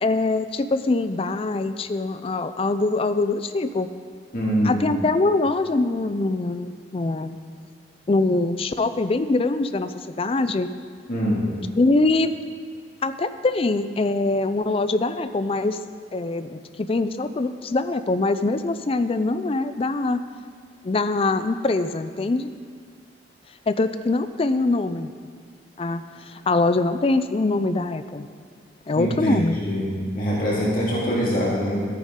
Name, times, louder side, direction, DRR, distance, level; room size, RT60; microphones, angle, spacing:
voice 1, 0.0-3.9 4.6-7.4 8.1-10.7 11.8-12.3 13.0-15.8 16.1-20.2 20.8-22.5 23.7-25.1 25.8-28.3 28.9-29.6, left 2 dB, 30° left, 11 dB, 0.4 m, -23 dB
voice 2, 4.3-4.8 11.1-11.5 29.0-31.9, equal, 50° left, -6 dB, 2.1 m, -24 dB
13.5 x 9.4 x 3.7 m, 2.1 s
head